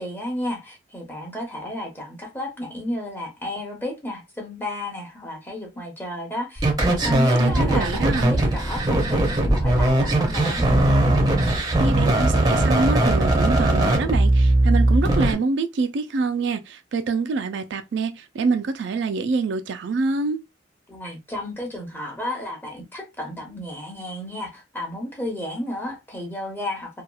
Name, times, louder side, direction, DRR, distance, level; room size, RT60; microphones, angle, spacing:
voice 1, 0.0-10.6 20.9-27.0, left 1 dB, 10° left, 0.8 m, -32 dB
sound 1, 6.6-15.3, right 1 dB, 20° right, 0.6 m, -19 dB
voice 2, 7.4-8.4 11.8-20.4, right 4 dB, 65° right, 0.3 m, -26 dB
2.8 x 2.3 x 2.2 m
head